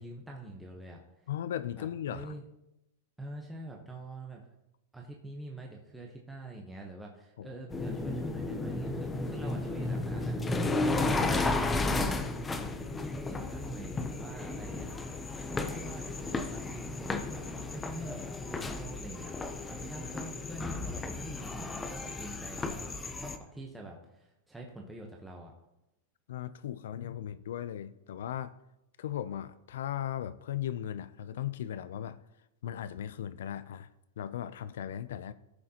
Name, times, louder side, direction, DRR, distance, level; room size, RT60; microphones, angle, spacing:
voice 1, 0.0-1.3 1.7-2.4 3.2-4.4 4.9-11.9 12.9-14.9 15.5-19.3 19.7-22.9 23.2-25.5, right 1 dB, 5° right, -1 dB, 0.9 m, -45 dB
voice 2, 1.3-2.3 7.4-7.5 26.3-28.6 29.0-32.2 32.6-33.9 34.2-35.3, left 10 dB, 80° left, 14 dB, 0.4 m, -37 dB
sound 1, 7.7-23.4, left 2 dB, 10° left, 0.6 m, -33 dB
15.0 x 6.4 x 2.9 m, 0.90 s
supercardioid pair, 145°, 0 cm